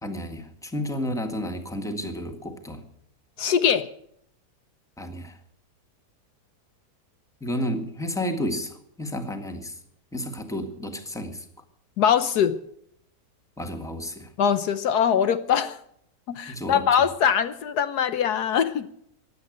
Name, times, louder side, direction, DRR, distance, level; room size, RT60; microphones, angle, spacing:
voice 1, 0.0-2.8 5.0-5.4 7.4-9.8 10.1-11.4 13.6-14.3 16.5-17.1, left 1 dB, ahead, 5 dB, 1.6 m, -31 dB
voice 2, 3.4-3.9 12.0-12.6 14.4-15.8 16.3-18.9, left 8 dB, 70° left, 11 dB, 1.3 m, -22 dB
16.0 x 10.5 x 8.0 m, 0.70 s
omnidirectional pair, 1.8 m